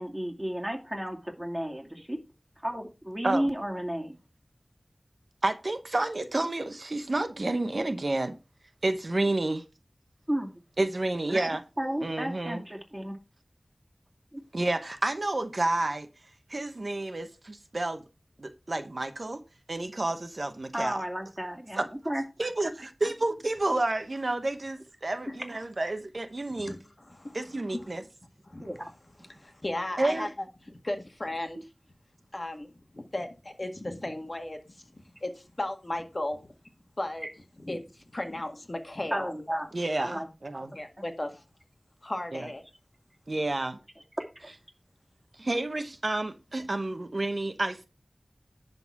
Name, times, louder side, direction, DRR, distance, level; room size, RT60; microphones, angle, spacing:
voice 1, 0.0-2.2 2.6-4.2 10.3-10.5 11.8-13.2 14.3-14.4 20.7-22.2 28.6-28.9 39.1-39.7 40.0-40.3 44.2-44.3, equal, 15° right, 2.4 m, -32 dB
voice 2, 5.4-8.3 8.8-9.6 10.8-11.6 12.0-12.6 14.5-16.1 16.5-18.0 18.4-19.4 19.7-21.0 21.7-21.8 22.4-26.8 27.3-28.0 30.0-30.3 39.7-40.7 42.3-42.5 43.3-43.8 45.4-47.9, right 2 dB, 60° right, 1.0 m, -30 dB
voice 3, 26.6-27.4 27.7-28.0 28.4-28.7 29.2-31.7 32.3-36.5 37.0-37.3 37.6-39.3 40.7-41.4 42.0-42.6, left 1 dB, 45° left, 1.8 m, -36 dB
11.0 x 4.0 x 5.9 m
wide cardioid pair, 55°, 0 cm